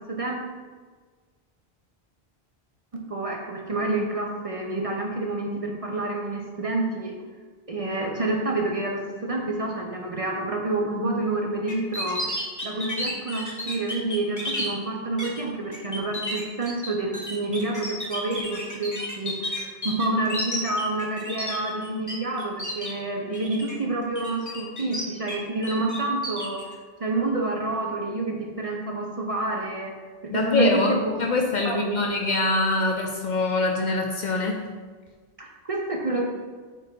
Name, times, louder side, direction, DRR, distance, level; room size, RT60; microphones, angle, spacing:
voice 1, 0.1-0.4 2.9-7.1 7.7-12.3 12.6-26.6 27.0-29.9 30.3-31.1 31.6-32.0 35.4-36.2, right 2 dB, 40° right, 0 dB, 0.6 m, -28 dB
sound 1, 11.7-14.7 15.2-15.4 15.7-22.1 22.4-22.9 23.3-23.7 24.1-25.3 25.6-26.6, left 1 dB, 20° left, 1.0 m, -32 dB
voice 2, 30.3-34.7, left 3 dB, 55° left, 1 dB, 0.6 m, -24 dB
4.6 x 4.1 x 5.2 m, 1.5 s
omnidirectional pair, 1.1 m